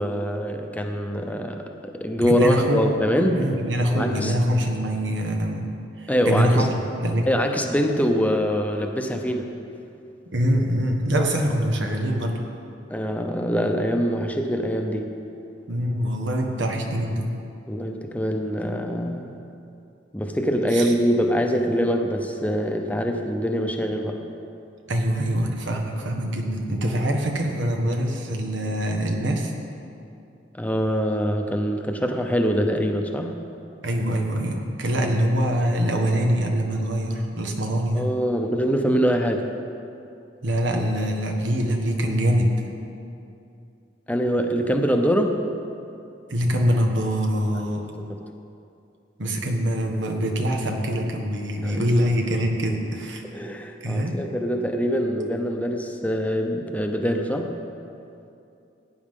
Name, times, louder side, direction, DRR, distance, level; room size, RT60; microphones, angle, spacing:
voice 1, 0.0-3.5 3.9-4.3 6.1-6.7 7.3-9.5 12.9-15.1 17.7-19.3 20.1-24.2 30.6-33.4 37.9-39.5 44.1-45.4 47.5-48.2 51.6-51.8 53.2-57.5, equal, 10° left, 3 dB, 0.7 m, -24 dB
voice 2, 2.2-2.8 3.3-5.7 6.0-7.3 10.3-12.4 15.7-17.3 20.7-20.9 24.9-29.5 33.8-38.1 40.4-42.5 46.3-47.9 49.2-53.2 53.8-54.2, equal, 90° right, 2 dB, 1.4 m, -24 dB
17.0 x 9.4 x 3.8 m, 2.6 s
head